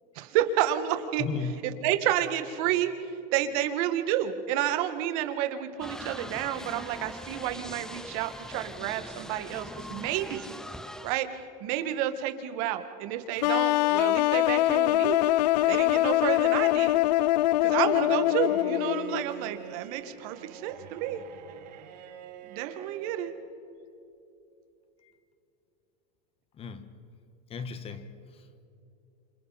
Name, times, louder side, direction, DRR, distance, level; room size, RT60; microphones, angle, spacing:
voice 1, 0.2-1.2 1.8-2.9 3.3-10.5 11.0-15.2 15.7-17.0 17.6-21.2 22.5-23.3, right 11 dB, 60° right, 8 dB, 2.0 m, -30 dB
voice 2, 1.2-1.5 25.0-25.1 26.5-26.9 27.5-28.5, left 6 dB, 25° left, 10 dB, 1.5 m, -36 dB
sound 1, 5.8-11.2, left 1 dB, 5° left, 0.7 m, -42 dB
sound 2, 13.4-19.2, left 16 dB, 80° left, 0.4 m, -23 dB
Bowed string instrument, 17.9-23.4, right 8 dB, 80° right, 2.2 m, -45 dB
28.0 x 27.0 x 4.3 m, 2.7 s
supercardioid pair, 130°, 21 cm